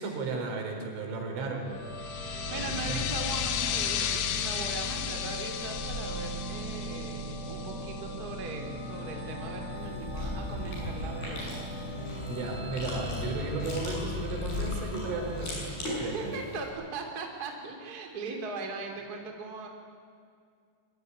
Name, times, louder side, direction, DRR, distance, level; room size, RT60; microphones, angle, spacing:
voice 1, 0.0-1.7 2.5-3.1 12.3-16.3, right 3 dB, 75° right, 2 dB, 6.7 m, -35 dB
sound 1, 1.7-16.4, left 1 dB, 20° left, 3.4 m, -37 dB
sound 2, 2.0-8.3, left 9 dB, 70° left, 3.4 m, -34 dB
voice 2, 2.5-11.5 15.8-19.7, right 3 dB, 25° right, 2 dB, 2.5 m, -39 dB
Chewing mastication, 9.8-16.7, left 1 dB, 50° left, 9.1 m, -40 dB
24.5 x 23.0 x 9.7 m, 2.2 s
omnidirectional pair, 5.7 m